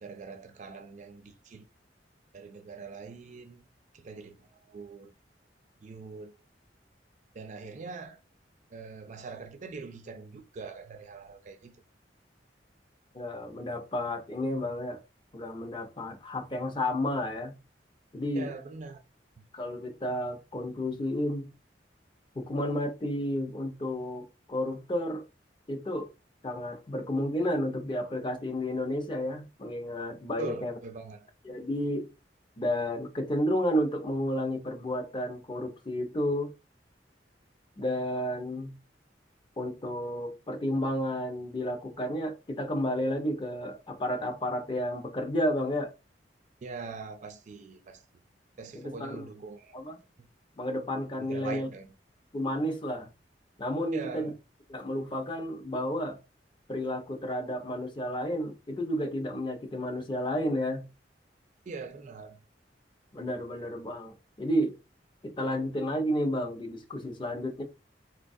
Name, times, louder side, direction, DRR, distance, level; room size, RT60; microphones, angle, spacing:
voice 1, 0.0-1.7 2.3-3.6 3.9-5.1 5.8-6.4 7.3-8.2 8.7-11.8 18.4-19.0 19.4-19.5 30.4-31.3 46.6-48.0 48.6-49.7 50.2-50.3 51.2-51.9 53.9-54.4 61.7-62.4, right 4 dB, 45° right, 0.4 m, -42 dB
voice 2, 13.1-15.0 15.3-17.5 18.1-18.5 19.5-21.5 22.4-25.2 25.7-26.1 26.4-30.8 31.4-32.1 32.6-36.5 37.8-38.7 39.6-45.9 48.7-49.3 49.7-50.0 50.6-51.7 52.3-53.1 53.6-54.3 54.7-56.2 56.7-60.8 63.1-64.8 65.2-67.6, equal, 30° left, 0.6 m, -31 dB
4.0 x 2.2 x 2.5 m
head